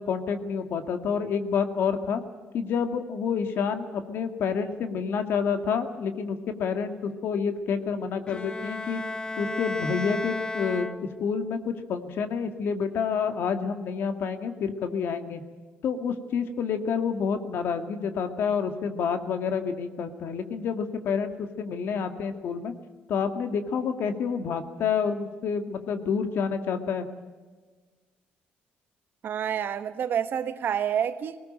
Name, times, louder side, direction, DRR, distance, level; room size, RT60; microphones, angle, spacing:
voice 1, 0.0-2.2 2.5-9.0 9.4-10.9 11.2-15.4 15.8-22.7 23.1-27.1, left 6 dB, 70° left, 2.0 m, -28 dB
Bowed string instrument, 8.3-11.4, left 2 dB, 20° left, 1.0 m, -33 dB
voice 2, 29.2-31.4, right 8 dB, 60° right, 1.4 m, -28 dB
19.5 x 19.0 x 8.9 m
cardioid pair, 90°, 4 cm